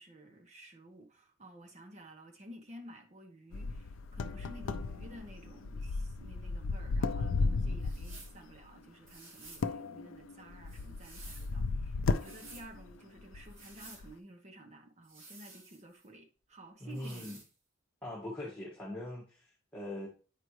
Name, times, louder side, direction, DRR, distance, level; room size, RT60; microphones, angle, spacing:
voice 1, 0.0-17.4, right 1 dB, 35° right, 1.1 m, -53 dB
sound 1, 3.5-8.3 9.5-12.9 13.2-13.5 14.0-14.1, left 3 dB, 70° left, 0.4 m, -35 dB
sound 2, 7.8-8.4 9.1-9.7 10.7-11.5 12.1-12.7 13.4-14.0 15.0-16.1 16.9-17.5, right 3 dB, 70° right, 2.5 m, -53 dB
voice 2, 16.8-17.4 18.0-20.1, left 1 dB, 10° left, 1.9 m, -41 dB
8.5 x 5.0 x 3.2 m
head